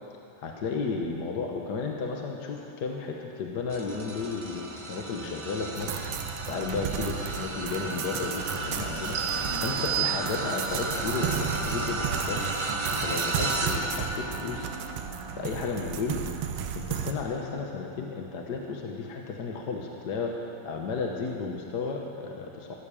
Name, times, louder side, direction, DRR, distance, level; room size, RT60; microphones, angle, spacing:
voice 1, 0.4-6.0 6.5-12.5 13.0-14.7 15.3-16.2 16.7-20.4 20.6-22.7, left 4 dB, 55° left, 1 dB, 1.6 m, -33 dB
sound 1, 3.7-19.2 19.7-20.0 21.2-21.3, right 2 dB, 40° right, 0.4 m, -35 dB
sound 2, 5.8-17.1, right 8 dB, 85° right, 1.7 m, -34 dB
sound 3, 9.2-10.9, right 13 dB, 65° right, 1.3 m, -32 dB
14.0 x 14.0 x 7.0 m, 2.5 s
omnidirectional pair, 2.4 m